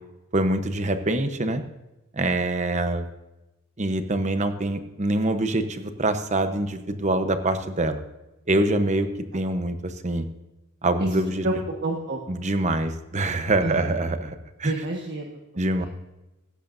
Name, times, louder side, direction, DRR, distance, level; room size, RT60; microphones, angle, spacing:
voice 1, 0.3-1.6 2.1-3.0 3.8-8.0 8.5-9.1 9.3-10.3 10.8-11.4 12.3-14.7 15.6-15.9, right 2 dB, 35° right, 8 dB, 1.0 m, -25 dB
voice 2, 11.8-12.2 13.6-14.0 14.6-15.4 15.8-15.9, right 2 dB, 55° right, 0 dB, 1.5 m, -29 dB
16.0 x 15.0 x 2.7 m, 1.0 s
head